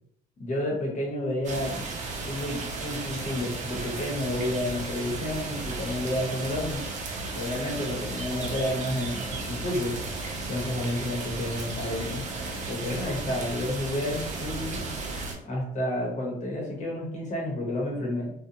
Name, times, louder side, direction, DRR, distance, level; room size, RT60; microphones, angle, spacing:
voice 1, 0.4-1.8 2.3-6.8 7.3-9.9 10.5-12.3 12.7-14.8 15.4-18.3, left 1 dB, 45° left, -2 dB, 1.1 m, -30 dB
sound 1, 1.4-15.3, right 3 dB, 45° right, 0.6 m, -34 dB
2.5 x 2.3 x 2.8 m, 0.69 s
cardioid pair, 110°, 17 cm